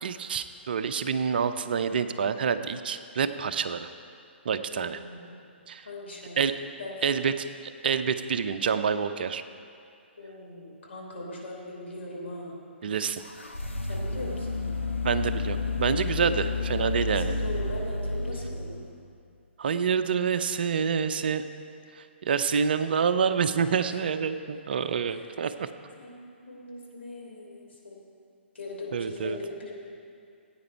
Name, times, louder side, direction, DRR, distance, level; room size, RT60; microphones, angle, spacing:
voice 1, 0.0-3.9 4.4-5.0 5.7-5.9 6.4-6.5 7.0-9.4 12.8-13.2 15.0-17.3 19.6-21.4 21.9-25.7 28.9-29.4, right 6 dB, 50° right, 10 dB, 0.6 m, -27 dB
voice 2, 4.7-5.5 5.8-6.4 6.8-7.0 10.2-12.5 13.8-14.7 16.3-16.5 17.0-18.8 23.7-24.0 25.1-25.2 26.0-26.2 26.4-28.0 28.5-29.7, left 2 dB, 70° left, -3 dB, 3.4 m, -40 dB
sound 1, 13.2-19.1, left 3 dB, 90° left, 1.1 m, -31 dB
16.5 x 8.9 x 4.5 m, 2.4 s
figure-of-eight pair, 125°, 6 cm